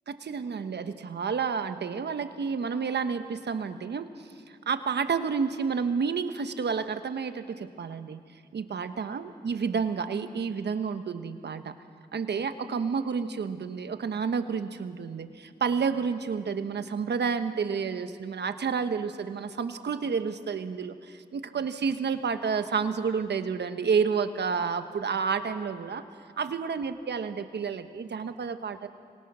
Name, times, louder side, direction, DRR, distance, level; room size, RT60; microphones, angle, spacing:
voice 1, 0.1-4.1 4.5-8.2 8.5-11.7 12.1-26.0 26.4-28.9, right 6 dB, 80° right, 9 dB, 1.2 m, -30 dB
25.5 x 22.5 x 6.2 m, 2.2 s
cardioid pair, 55°, 18 cm